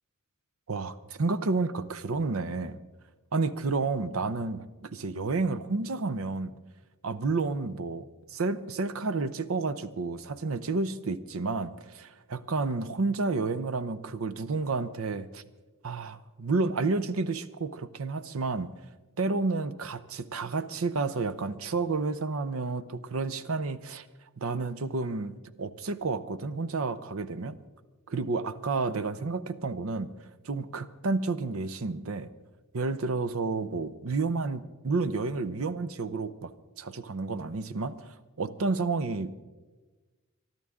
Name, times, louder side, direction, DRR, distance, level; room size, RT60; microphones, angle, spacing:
voice 1, 0.7-2.8 3.3-6.5 7.0-15.4 15.8-18.7 19.2-24.1 24.4-27.6 28.1-30.1 30.4-32.3 32.7-36.5 36.8-38.0 38.4-39.4, right 3 dB, 70° right, 14 dB, 0.7 m, -30 dB
23.5 x 12.5 x 3.7 m, 1.3 s
head